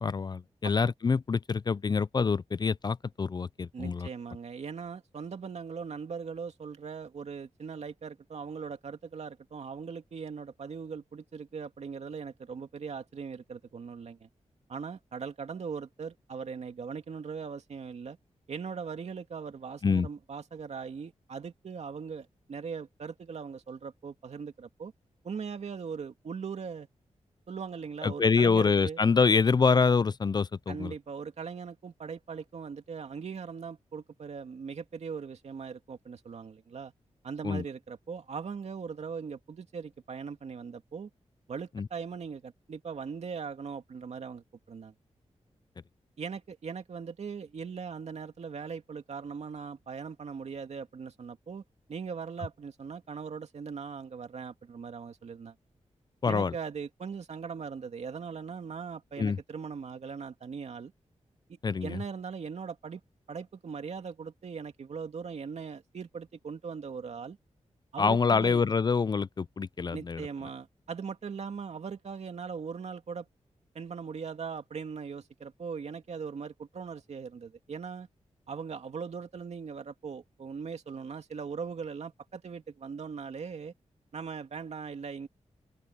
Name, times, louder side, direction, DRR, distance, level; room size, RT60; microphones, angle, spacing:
voice 1, 0.0-4.1 19.8-20.1 28.0-30.9 37.4-37.6 41.8-41.9 56.2-56.5 59.2-59.4 61.6-62.0 68.0-70.3, left 5 dB, 35° left, 0.4 m, -26 dB
voice 2, 3.7-14.3 14.7-18.2 18.5-24.9 25.2-26.9 27.5-29.0 30.7-36.9 37.2-41.1 41.5-44.9 46.2-51.6 51.9-55.5 56.3-60.9 61.5-63.0 63.3-67.4 67.9-68.6 69.9-73.3 73.7-78.1 78.5-83.7 84.1-85.3, right 6 dB, 65° right, 2.5 m, -40 dB
open air
wide cardioid pair, 110°, 12 cm